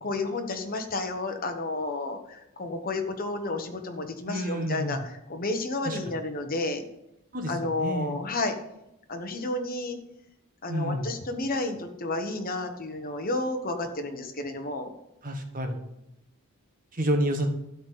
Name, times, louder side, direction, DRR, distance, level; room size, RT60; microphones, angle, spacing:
voice 1, 0.0-6.8 7.5-8.5 9.1-10.0 10.6-14.9, left 2 dB, 40° left, 5 dB, 1.3 m, -31 dB
voice 2, 4.3-5.0 5.8-6.0 7.3-7.5 7.8-8.2 10.7-11.1 15.2-15.8 16.9-17.5, equal, 40° right, 5 dB, 1.3 m, -29 dB
12.5 x 4.2 x 8.2 m, 0.86 s
head